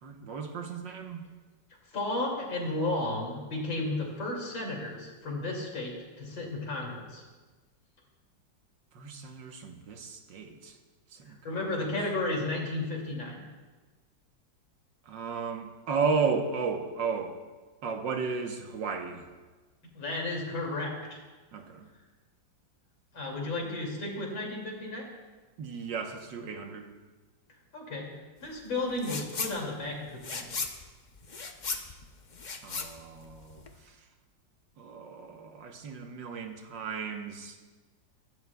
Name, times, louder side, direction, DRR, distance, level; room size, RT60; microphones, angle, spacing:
voice 1, 0.0-1.2 8.9-10.8 11.1-11.7 15.1-17.4 17.8-19.3 21.5-21.9 25.6-26.9 32.6-34.0 34.8-37.6, right 5 dB, 75° right, 4 dB, 1.8 m, -34 dB
voice 2, 1.9-7.2 11.4-13.4 19.9-21.2 23.1-25.1 27.7-28.1 28.4-30.5, left 2 dB, 80° left, -1 dB, 3.5 m, -33 dB
sound 1, 29.0-29.6 29.9-33.8, left 4 dB, 45° left, 0.6 m, -36 dB
24.0 x 12.0 x 2.4 m, 1.3 s
omnidirectional pair, 2.0 m